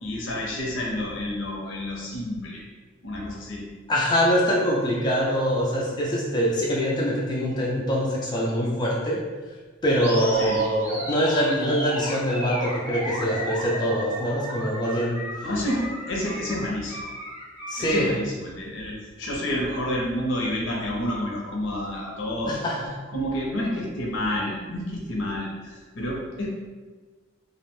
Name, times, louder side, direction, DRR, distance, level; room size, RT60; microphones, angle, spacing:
voice 1, 0.0-2.6 3.0-3.6 10.3-10.6 15.4-17.1 17.8-26.5, left 1 dB, 75° left, -2 dB, 0.6 m, -29 dB
voice 2, 3.9-9.2 9.8-15.5 17.7-18.1 22.5-22.9, equal, 20° left, -4 dB, 0.3 m, -24 dB
Animal, 9.9-18.1, equal, 10° right, 0.7 m, -34 dB
2.5 x 2.1 x 3.0 m, 1.3 s
head